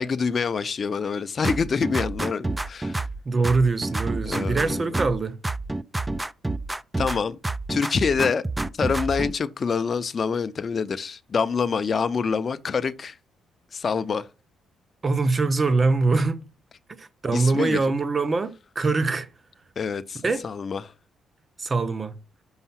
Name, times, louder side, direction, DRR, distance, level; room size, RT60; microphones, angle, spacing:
voice 1, 0.0-3.0 4.3-4.9 7.0-7.4 7.7-8.4 8.7-13.2 13.7-14.3 17.3-17.8 19.8-20.8, left 5 dB, 40° left, 0.5 m, -26 dB
sound 1, 1.4-3.2 3.4-5.2 5.4-7.2 7.4-9.3, right 2 dB, 15° right, 0.4 m, -28 dB
voice 2, 3.3-5.3 15.0-16.4 17.0-19.3 20.2-20.4 21.6-22.2, right 3 dB, 30° right, 0.7 m, -23 dB
5.6 x 5.3 x 5.8 m
cardioid pair, 90°, 0 cm